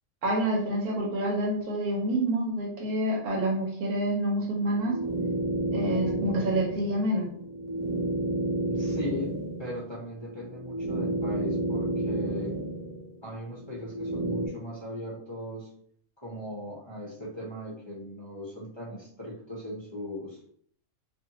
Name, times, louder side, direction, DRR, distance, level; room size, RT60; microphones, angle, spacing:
voice 1, 0.2-4.9 5.7-7.3, right 1 dB, 85° right, -1 dB, 1.2 m, -27 dB
sound 1, 4.4-13.1 13.5-14.5, right 1 dB, 35° right, 0.6 m, -31 dB
voice 2, 8.7-9.3 9.6-12.6 13.2-15.7 16.2-20.4, left 1 dB, 45° left, -6 dB, 0.3 m, -38 dB
2.6 x 2.5 x 2.8 m, 0.64 s
omnidirectional pair, 1.5 m